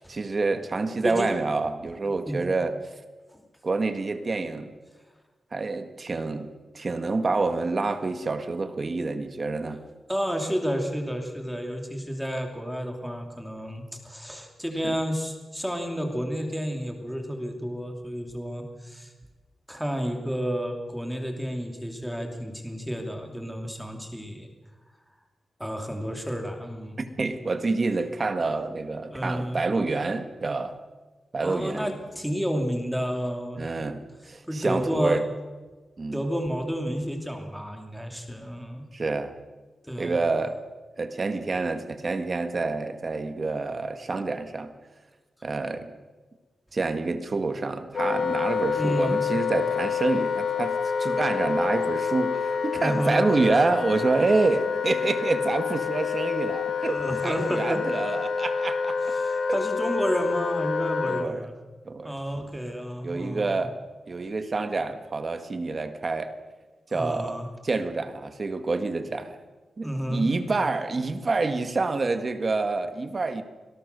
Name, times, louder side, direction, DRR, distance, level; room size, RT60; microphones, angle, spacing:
voice 1, 0.1-2.8 3.6-4.7 5.5-6.5 6.7-9.8 14.8-15.0 27.0-30.7 31.3-31.9 33.6-35.2 36.0-36.2 38.9-39.3 40.0-40.6 41.0-44.7 45.4-45.9 46.7-59.0 59.5-59.6 61.0-61.5 61.8-62.2 63.0-63.8 64.1-66.3 66.9-69.4 69.8-73.4, right 3 dB, 35° right, 9 dB, 1.6 m, -27 dB
voice 2, 10.1-19.1 19.7-24.5 25.6-27.0 29.1-29.6 31.4-33.6 34.4-35.2 36.1-38.8 39.8-40.2 48.8-49.2 52.8-53.2 56.9-57.8 59.0-61.5 62.0-63.7 66.9-67.5 69.8-70.3, equal, ahead, 3 dB, 2.8 m, -31 dB
Wind instrument woodwind instrument, 47.9-61.3, left 6 dB, 65° left, 1.9 m, -28 dB
26.0 x 18.0 x 6.8 m, 1.3 s
wide cardioid pair, 165°, 0 cm